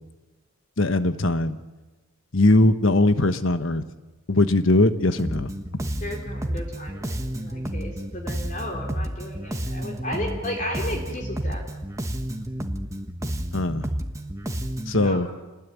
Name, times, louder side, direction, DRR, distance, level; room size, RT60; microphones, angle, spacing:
voice 1, 0.8-1.6 2.3-3.8 4.3-5.5 13.5-13.9 14.9-15.3, left 2 dB, 60° left, 11 dB, 1.2 m, -20 dB
Bass guitar, 5.2-15.1, equal, 15° right, 1.4 m, -31 dB
voice 2, 6.0-11.6 15.0-15.3, left 1 dB, 35° left, 1 dB, 3.4 m, -34 dB
27.5 x 20.0 x 9.5 m, 1.2 s
head